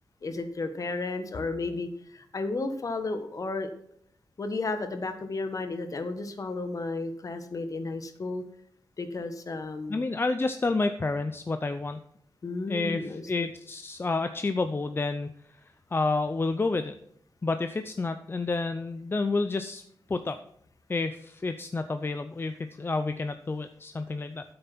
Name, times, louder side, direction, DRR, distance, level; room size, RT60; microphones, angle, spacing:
voice 1, 0.2-3.7 4.4-8.4 9.0-10.1 12.4-13.5, left 3 dB, 50° left, 9 dB, 1.4 m, -33 dB
voice 2, 9.9-12.0 12.7-15.3 15.9-16.9 17.4-19.8 20.1-20.4 20.9-24.4, left 3 dB, 30° left, 9 dB, 0.6 m, -29 dB
9.1 x 7.9 x 6.0 m, 0.69 s
wide cardioid pair, 85°, 7 cm